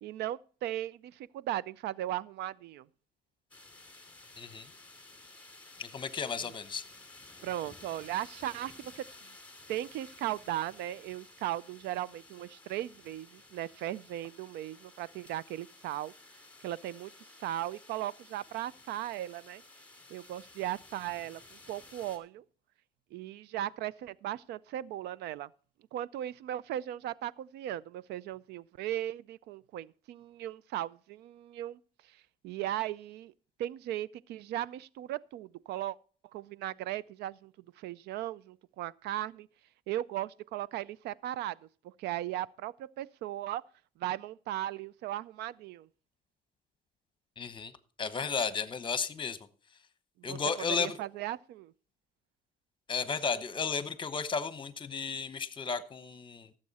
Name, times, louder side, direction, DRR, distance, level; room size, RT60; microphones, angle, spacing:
voice 1, 0.0-2.9 6.4-6.5 7.4-9.0 9.7-16.1 16.6-17.1 17.4-19.6 20.1-21.4 21.7-22.4 23.1-25.5 25.9-31.8 32.4-33.3 33.6-36.0 36.3-39.5 39.9-41.6 41.8-43.6 44.0-45.9 50.2-50.4 50.8-51.7, right 13 dB, 75° right, 0.4 m, -37 dB
sound 1, 3.5-22.2, left 2 dB, 10° left, 2.7 m, -54 dB
voice 2, 4.4-4.7 5.8-6.8 47.4-47.7 48.0-49.4 50.2-51.0 52.9-56.5, left 5 dB, 30° left, 1.0 m, -34 dB
17.0 x 7.6 x 4.1 m
cardioid pair, 110°, 17 cm